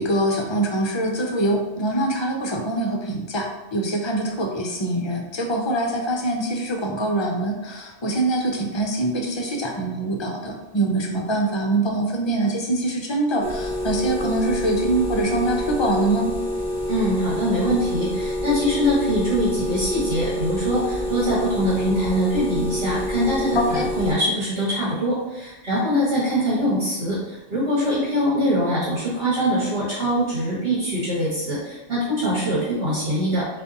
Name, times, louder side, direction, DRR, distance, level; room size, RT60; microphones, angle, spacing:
voice 1, 0.0-16.3 23.5-23.8, right 1 dB, 35° left, 1 dB, 0.4 m, -24 dB
sound 1, 13.4-24.1, left 1 dB, 15° right, 1.1 m, -27 dB
voice 2, 16.9-27.2 27.5-33.5, equal, 50° right, -8 dB, 1.8 m, -23 dB
6.9 x 2.5 x 2.9 m, 1.0 s
omnidirectional pair, 1.3 m